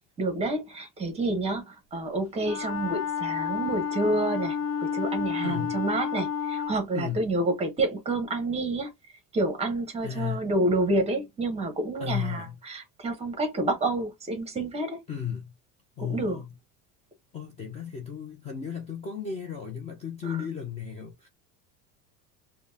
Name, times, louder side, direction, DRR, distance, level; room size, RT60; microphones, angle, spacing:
voice 1, 0.2-8.9 9.3-15.0 16.0-16.4 20.2-20.4, right 2 dB, 15° right, 0.9 m, -29 dB
Wind instrument woodwind instrument, 2.4-6.8, left 7 dB, 65° left, 0.9 m, -30 dB
voice 2, 5.4-5.8 6.9-7.2 10.0-10.5 12.0-12.6 15.1-15.5 16.0-16.5 17.3-21.3, left 8 dB, 15° left, 0.5 m, -34 dB
5.1 x 2.2 x 2.7 m
cardioid pair, 165°, 37 cm